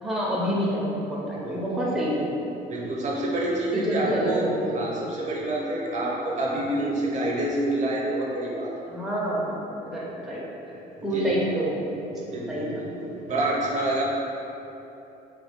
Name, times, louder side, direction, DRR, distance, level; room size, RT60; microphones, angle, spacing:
voice 1, 0.0-2.4 3.7-4.8 8.9-9.5 9.8-10.7 11.0-12.0 12.5-13.0, equal, ahead, -6 dB, 0.5 m, -28 dB
voice 2, 1.4-1.9 2.7-4.5 4.7-8.7 11.0-11.3 12.2-14.0, right 1 dB, 45° right, -3 dB, 0.6 m, -28 dB
3.0 x 2.2 x 3.4 m, 3.0 s
cardioid pair, 110°, 17 cm